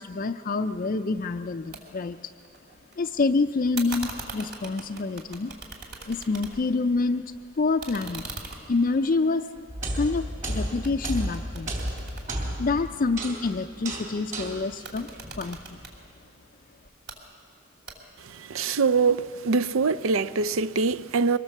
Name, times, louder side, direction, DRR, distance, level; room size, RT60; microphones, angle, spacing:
voice 1, 0.0-2.2 3.0-5.5 6.1-7.2 7.6-8.3 8.7-9.7 9.9-11.7 12.6-15.1 15.4-15.8, left 3 dB, 40° left, 0.4 m, -27 dB
sound 1, 1.7-1.8 2.1-2.9 3.7-6.8 7.2-10.4 10.8-13.1 14.7-16.0 16.8-17.2 17.9-18.3, right 4 dB, 55° right, 3.0 m, -41 dB
sound 2, 9.7-16.0, right 1 dB, 40° right, 3.3 m, -33 dB
voice 2, 18.5-21.4, right 4 dB, 75° right, 0.5 m, -23 dB
23.5 x 19.5 x 7.3 m
head